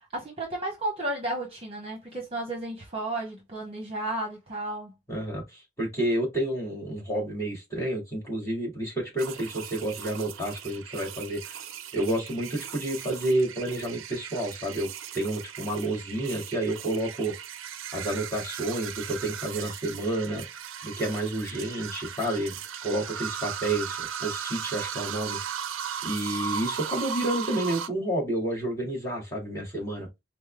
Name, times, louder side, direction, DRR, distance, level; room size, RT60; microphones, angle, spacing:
voice 1, 0.1-4.9, right 1 dB, 30° right, 1.1 m, -33 dB
voice 2, 5.1-11.6 11.9-17.3 17.9-20.4 20.8-22.6 22.8-25.4 26.0-30.1, right 1 dB, 15° left, 2.1 m, -30 dB
sound 1, 9.2-27.9, right 8 dB, 85° right, 0.5 m, -37 dB
5.4 x 2.1 x 3.3 m
head